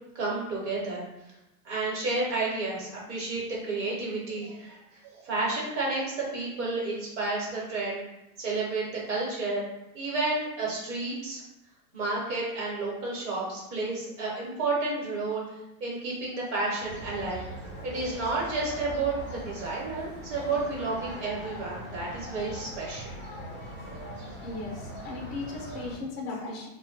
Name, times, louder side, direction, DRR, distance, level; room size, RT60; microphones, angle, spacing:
voice 1, 0.1-1.1 1.6-8.0 8.4-9.7 9.9-11.4 11.9-15.4 15.8-17.4 17.8-23.2, right 3 dB, 50° right, -5 dB, 1.0 m, -31 dB
sound 1, 16.8-26.0, equal, 20° right, 0.5 m, -41 dB
voice 2, 24.4-26.7, left 3 dB, 45° left, -1 dB, 0.5 m, -37 dB
2.1 x 2.1 x 3.8 m, 0.90 s
supercardioid pair, 175°, 45 cm